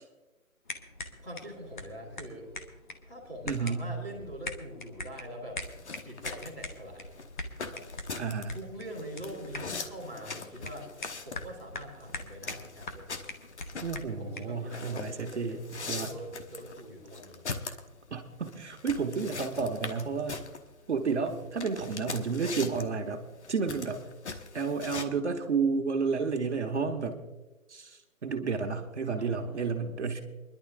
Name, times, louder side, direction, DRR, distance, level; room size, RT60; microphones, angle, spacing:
sound 1, 0.7-14.6, left 2 dB, 35° left, 1.0 m, -44 dB
voice 1, 1.2-2.5 3.1-5.6 6.0-7.2 7.7-7.8 8.5-10.9 11.2-13.1 14.2-17.5 29.2-29.8, equal, 10° left, -6 dB, 2.1 m, -43 dB
voice 2, 3.5-3.9 8.2-8.6 13.8-16.1 17.7-17.8 18.1-20.4 20.9-24.0 24.5-27.2 27.7-30.2, right 5 dB, 55° right, 4 dB, 1.5 m, -31 dB
sound 2, 5.6-25.1, left 4 dB, 55° left, 1.2 m, -41 dB
28.0 x 11.5 x 2.5 m, 1.1 s
hypercardioid pair, 170°, 42 cm